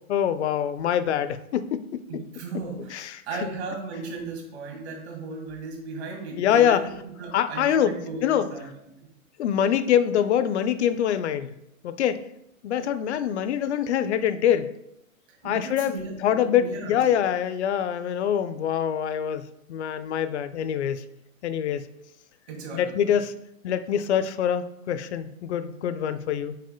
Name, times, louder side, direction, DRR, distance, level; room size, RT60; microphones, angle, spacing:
voice 1, 0.0-2.0 2.9-3.2 6.4-6.8 7.3-7.9 8.2-8.5 9.4-11.5 11.8-12.2 12.6-14.7 15.4-21.0 21.4-21.9 22.7-23.3 23.6-26.6, left 9 dB, 55° left, 12 dB, 0.5 m, -24 dB
voice 2, 2.1-8.7 9.0-9.1 15.3-17.0 22.5-23.1, right 3 dB, 50° right, 0 dB, 2.1 m, -36 dB
5.5 x 4.8 x 3.8 m, 0.80 s
hypercardioid pair, 135°, 42 cm